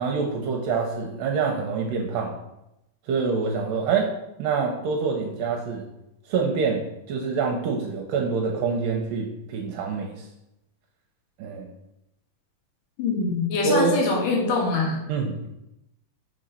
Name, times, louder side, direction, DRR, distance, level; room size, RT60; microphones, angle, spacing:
voice 1, 0.0-2.3 3.1-4.1 4.4-5.8 6.3-6.8 7.1-10.2 11.4-11.7 13.6-14.0 15.1-15.5, right 5 dB, 80° right, 0 dB, 2.3 m, -26 dB
voice 2, 13.0-15.0, left 3 dB, 65° left, -2 dB, 2.9 m, -24 dB
6.2 x 3.8 x 5.4 m, 0.87 s
omnidirectional pair, 4.1 m